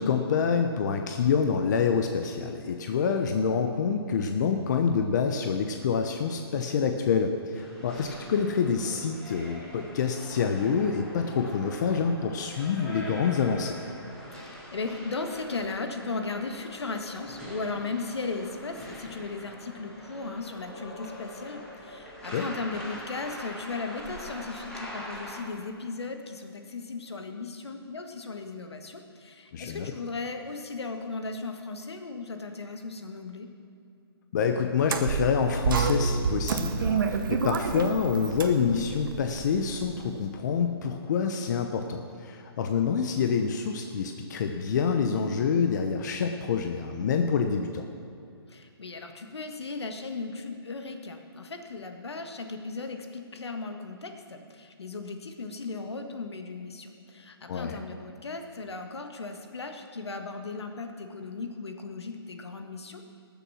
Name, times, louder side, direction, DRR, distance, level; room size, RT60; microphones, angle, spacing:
voice 1, 0.0-13.8 22.3-22.4 29.5-29.9 34.3-47.8 57.5-57.8, left 6 dB, 45° left, 5 dB, 0.8 m, -27 dB
sound 1, 7.5-25.4, equal, 5° left, 2.6 m, -43 dB
voice 2, 14.3-33.5 48.5-63.0, left 3 dB, 80° left, 5 dB, 1.7 m, -37 dB
sound 2, 34.8-40.1, right 5 dB, 55° right, 1.1 m, -29 dB
19.0 x 7.2 x 6.2 m, 2.6 s
hypercardioid pair, 150°, 14 cm